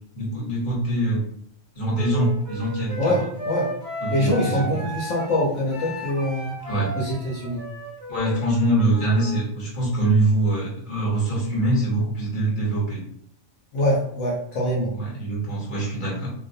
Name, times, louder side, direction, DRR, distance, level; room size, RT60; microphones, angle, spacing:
voice 1, 0.1-1.2 1.7-3.3 4.0-4.8 6.7-6.9 8.1-13.0 14.9-16.3, right 1 dB, 45° left, -5 dB, 1.1 m, -24 dB
Wind instrument woodwind instrument, 1.9-9.5, right 1 dB, 20° right, 0.5 m, -34 dB
voice 2, 3.0-3.7 4.1-6.6 7.0-7.6 13.7-14.9, left 1 dB, 80° left, -4 dB, 1.0 m, -24 dB
2.3 x 2.0 x 2.6 m, 0.65 s
omnidirectional pair, 1.3 m